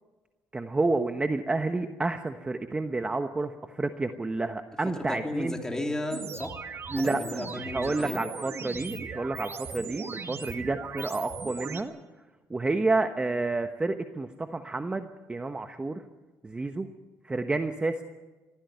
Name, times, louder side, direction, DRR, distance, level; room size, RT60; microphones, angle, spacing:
voice 1, 0.5-5.6 6.9-7.2 7.6-12.0 12.5-16.0 16.4-16.9 17.2-18.0, right 3 dB, 20° right, 7 dB, 1.1 m, -30 dB
voice 2, 4.9-6.5 7.0-8.2, left 1 dB, 10° left, 2 dB, 3.4 m, -34 dB
sound 1, 6.1-11.8, right 5 dB, 45° right, 2.0 m, -38 dB
22.5 x 15.5 x 9.4 m, 1.2 s
cardioid pair, 105°, 6 cm